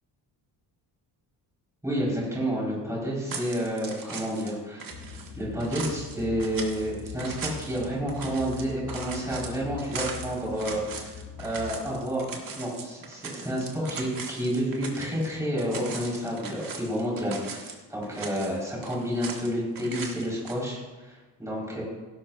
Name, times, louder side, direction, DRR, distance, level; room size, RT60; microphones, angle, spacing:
voice 1, 1.8-4.9 5.4-12.3 12.6-21.8, equal, 5° right, -5 dB, 4.3 m, -30 dB
sound 1, 3.3-4.5 4.8-15.3 15.6-17.7 18.0-19.5 19.8-20.5, right 5 dB, 50° right, 1.7 m, -39 dB
sound 2, 4.9-11.9, left 6 dB, 50° left, 3.1 m, -42 dB
16.5 x 11.5 x 2.5 m, 1.2 s
cardioid pair, 145°, 42 cm